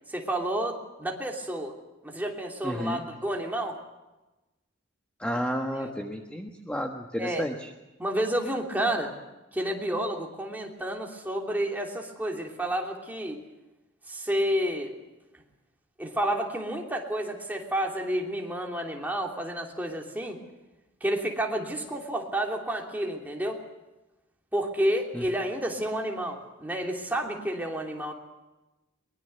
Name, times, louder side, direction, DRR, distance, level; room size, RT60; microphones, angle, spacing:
voice 1, 0.1-1.7 2.0-3.8 5.8-5.9 7.2-7.4 8.0-9.1 9.5-13.4 14.1-14.9 16.0-20.4 21.0-23.6 24.5-28.1, right 1 dB, 10° right, 0 dB, 3.1 m, -30 dB
voice 2, 2.6-3.0 5.2-7.5 25.1-25.2, equal, 5° left, 2 dB, 1.4 m, -31 dB
23.5 x 21.5 x 6.8 m, 1.0 s
head